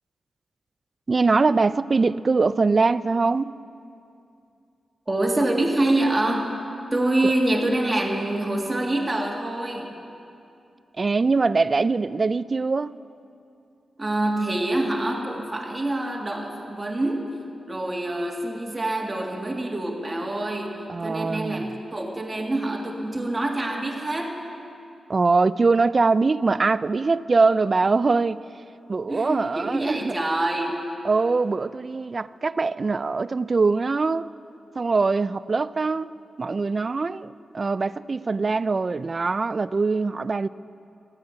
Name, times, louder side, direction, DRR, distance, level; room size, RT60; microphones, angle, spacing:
voice 1, 1.1-3.6 7.2-7.3 11.0-13.0 20.9-21.7 25.1-28.4 28.9-30.2 31.0-34.3 34.8-36.1 36.4-40.5, right 4 dB, 40° right, 0.3 m, -22 dB
voice 2, 5.1-6.5 6.9-10.0 14.0-24.4 29.1-30.8, right 1 dB, 20° right, 2.0 m, -26 dB
14.5 x 9.5 x 8.8 m
wide cardioid pair, 100°, 0 cm